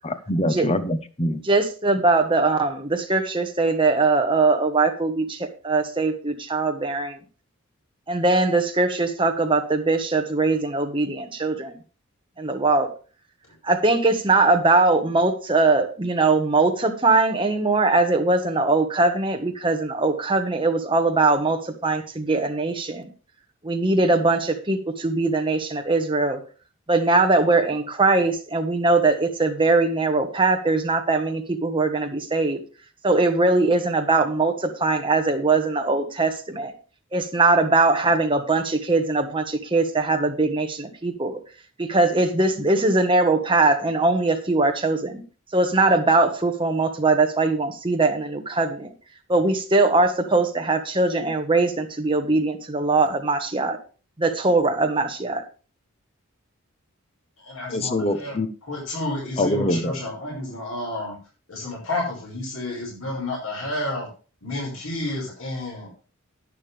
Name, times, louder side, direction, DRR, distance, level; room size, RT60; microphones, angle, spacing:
voice 1, 0.0-1.4 57.7-58.5 59.4-59.9, left 1 dB, 30° left, 9 dB, 1.0 m, -24 dB
voice 2, 1.4-7.2 8.1-11.7 12.4-12.9 13.6-23.1 23.6-26.4 26.9-32.6 33.0-36.7 37.1-41.4 41.8-45.2 45.5-48.9 49.3-53.8 54.2-55.4, right 3 dB, 25° right, 4 dB, 1.5 m, -21 dB
voice 3, 57.4-58.3 58.7-61.1 61.5-64.1 64.4-66.0, left 2 dB, 75° left, -2 dB, 5.8 m, -30 dB
11.0 x 9.9 x 3.5 m, 0.35 s
head